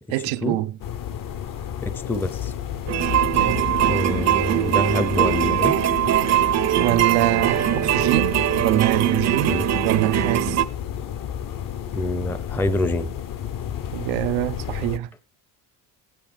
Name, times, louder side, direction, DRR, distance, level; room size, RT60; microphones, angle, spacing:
voice 1, 0.1-0.8 3.3-3.7 6.8-9.5 9.8-10.6 13.9-15.1, right 16 dB, 90° right, 0.8 m, -24 dB
sound 1, 0.8-15.0, left 10 dB, 45° left, 0.8 m, -31 dB
voice 2, 1.8-2.5 3.8-5.8 9.5-9.7 11.9-13.1, left 1 dB, 5° left, 0.6 m, -26 dB
sound 2, 2.9-10.7, right 12 dB, 35° right, 0.6 m, -21 dB
17.5 x 9.1 x 3.3 m
cardioid pair, 110°, 46 cm